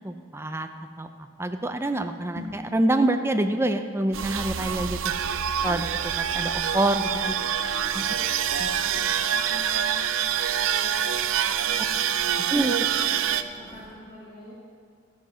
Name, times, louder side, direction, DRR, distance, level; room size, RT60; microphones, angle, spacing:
voice 1, 0.0-0.7 1.0-1.1 1.4-5.1 5.6-7.3 7.9-8.0 8.6-8.7 12.5-12.8, right 1 dB, 10° right, 7 dB, 0.5 m, -26 dB
sound 1, 2.2-2.8, left 2 dB, 80° left, 2.3 m, -40 dB
sound 2, 4.1-13.4, right 9 dB, 85° right, 0.5 m, -26 dB
sound 3, 5.7-13.9, equal, 20° left, 2.6 m, -51 dB
voice 2, 7.4-12.5 12.8-13.3 13.5-14.5, left 1 dB, 35° left, -8 dB, 2.0 m, -48 dB
12.5 x 7.3 x 6.3 m, 2.2 s
head